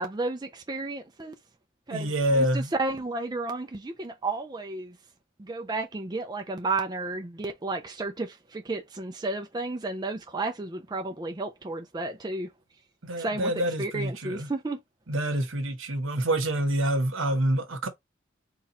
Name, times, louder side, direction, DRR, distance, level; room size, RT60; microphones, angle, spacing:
voice 1, 0.0-1.4 1.9-5.0 5.4-12.5 13.2-13.5 13.8-14.8, right 3 dB, 20° right, 0.4 m, -32 dB
voice 2, 1.9-2.7 13.0-14.5 15.1-17.9, right 1 dB, 80° right, 1.1 m, -27 dB
4.1 x 2.4 x 4.0 m
head